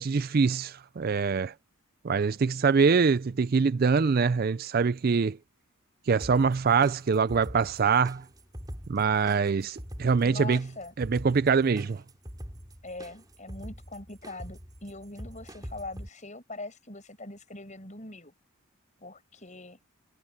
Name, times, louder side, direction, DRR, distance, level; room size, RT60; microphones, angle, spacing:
voice 1, 0.0-1.5 2.0-5.4 6.1-8.2 8.9-10.6 11.0-12.0, right 5 dB, 40° right, 0.4 m, -24 dB
sound 1, 6.2-16.1, equal, 15° right, 4.9 m, -44 dB
voice 2, 10.2-10.9 12.8-18.3 19.0-19.8, left 2 dB, 35° left, 7.9 m, -42 dB
head